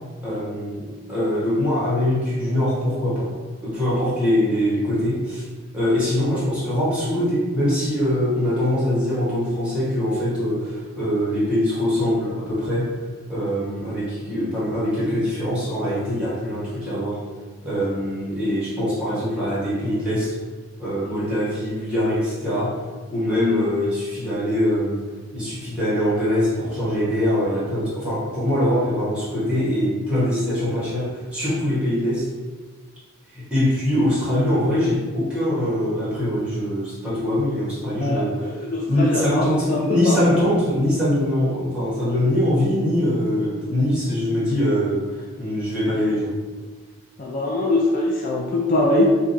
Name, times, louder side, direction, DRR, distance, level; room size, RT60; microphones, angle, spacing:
voice 1, 0.2-3.3 3.6-5.4 5.7-12.9 13.3-17.2 17.6-20.3 20.8-22.8 23.1-25.0 25.3-32.3 33.3-46.4, left 1 dB, 5° right, -10 dB, 1.0 m, -23 dB
voice 2, 38.0-39.4 39.7-39.8 40.0-40.3 47.2-49.1, left 2 dB, 40° left, -3 dB, 0.3 m, -22 dB
2.6 x 2.2 x 3.9 m, 1.4 s
head